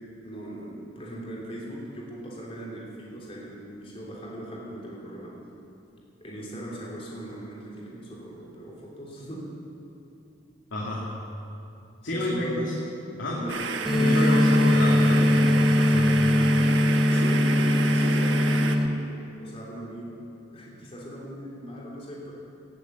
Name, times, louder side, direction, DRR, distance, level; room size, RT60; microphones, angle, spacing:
voice 1, 0.2-5.4 6.2-9.5 12.1-12.6 13.3-13.6 17.1-19.0 19.4-20.1 20.5-22.3, equal, 30° left, -4 dB, 3.5 m, -38 dB
voice 2, 10.7-11.0 12.0-12.7 13.2-13.4 14.0-16.3, left 1 dB, 80° left, -4 dB, 2.2 m, -30 dB
sound 1, 13.5-18.8, right 4 dB, 80° right, 1.1 m, -31 dB
sound 2, 13.9-18.9, left 1 dB, ahead, 1.4 m, -21 dB
18.5 x 8.2 x 8.3 m, 2.7 s
head